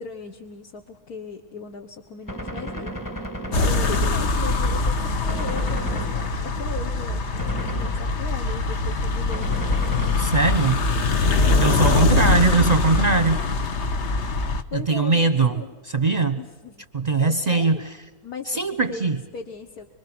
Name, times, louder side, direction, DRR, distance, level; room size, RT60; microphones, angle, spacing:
voice 1, 0.0-3.0 3.5-9.6 11.2-12.2 14.4-15.8 16.3-16.8 17.2-17.8 18.2-18.6 18.9-19.9, left 5 dB, 65° left, 2 dB, 1.8 m, -37 dB
Gunshot gunfire, 2.3-4.8 5.3-6.7 7.4-8.4 9.3-10.7 11.4-12.6, right 1 dB, 10° left, 1.4 m, -35 dB
sound 1, 3.5-14.6, left 3 dB, 45° left, 1.2 m, -23 dB
voice 2, 10.2-10.9 11.6-13.4 14.7-16.4 16.9-17.8 18.5-19.2, right 3 dB, 30° right, 9 dB, 0.9 m, -21 dB
25.5 x 25.0 x 6.1 m, 1.3 s
omnidirectional pair, 1.8 m